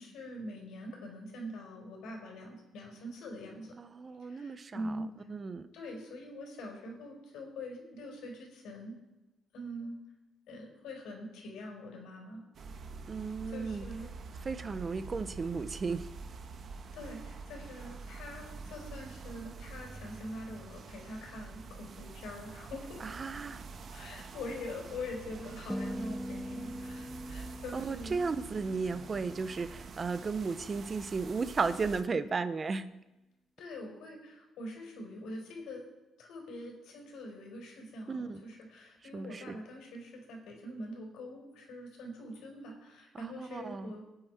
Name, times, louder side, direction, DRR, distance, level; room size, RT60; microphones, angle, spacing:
voice 1, 0.0-3.8 4.2-5.1 5.7-9.0 9.5-10.0 10.5-12.4 13.5-14.1 16.9-23.1 23.9-28.2 33.6-35.8 36.2-44.1, left 1 dB, 90° left, -1 dB, 4.5 m, -44 dB
voice 2, 3.8-5.0 5.3-5.7 13.1-13.8 14.4-16.1 23.0-23.6 27.7-32.9 38.1-38.4 39.1-39.6 43.1-43.9, right 4 dB, 35° right, 11 dB, 1.1 m, -35 dB
sound 1, 12.5-32.0, right 4 dB, 55° right, 1.5 m, -46 dB
sound 2, 25.7-30.0, equal, ahead, 0.5 m, -42 dB
23.5 x 9.2 x 4.7 m, 1.0 s
cardioid pair, 90°, 0 cm